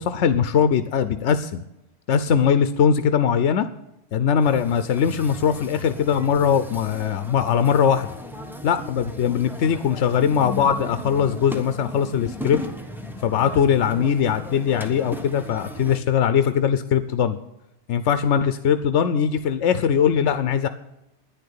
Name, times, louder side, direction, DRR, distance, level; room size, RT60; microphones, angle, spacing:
voice 1, 0.0-1.6 2.1-3.7 4.1-8.1 8.6-12.6 13.2-17.4 17.9-20.7, left 7 dB, 90° left, 11 dB, 1.0 m, -21 dB
sound 1, 4.4-16.0, equal, ahead, 1.2 m, -36 dB
10.5 x 10.0 x 8.6 m, 0.90 s
omnidirectional pair, 1.2 m